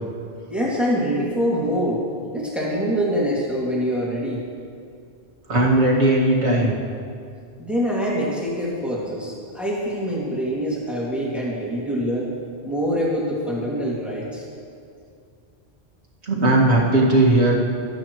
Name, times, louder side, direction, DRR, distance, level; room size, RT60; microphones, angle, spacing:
voice 1, 0.5-2.0 2.3-4.4 7.6-12.3 12.6-14.4, equal, ahead, -6 dB, 2.4 m, -24 dB
voice 2, 5.5-6.8 16.2-17.6, right 2 dB, 80° right, -4 dB, 2.3 m, -17 dB
24.5 x 8.7 x 3.2 m, 2.4 s
omnidirectional pair, 1.1 m